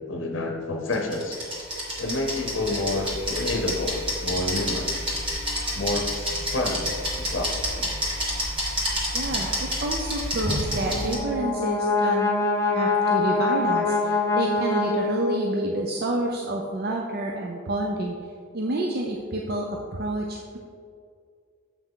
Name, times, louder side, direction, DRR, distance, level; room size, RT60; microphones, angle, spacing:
voice 1, 0.1-1.4 2.0-4.9 5.7-6.9 7.2-7.9, left 2 dB, 65° left, 3 dB, 0.7 m, -29 dB
sound 1, 0.9-11.1, equal, 25° right, 1.6 m, -29 dB
voice 2, 9.1-12.4 12.7-18.2 18.5-20.6, right 1 dB, 50° right, 0 dB, 0.5 m, -29 dB
Brass instrument, 10.6-15.7, left 3 dB, 15° left, 0.6 m, -24 dB
7.3 x 5.6 x 3.7 m, 2.2 s
head